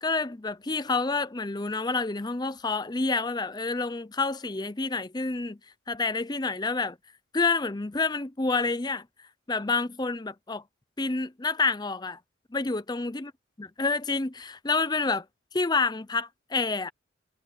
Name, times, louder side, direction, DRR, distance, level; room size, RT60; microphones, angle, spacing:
voice 1, 0.0-5.6 5.9-7.0 7.3-9.1 9.5-10.6 11.0-12.2 12.5-13.3 13.8-15.3 15.5-16.9, left 3 dB, 20° left, 0.6 m, -28 dB
head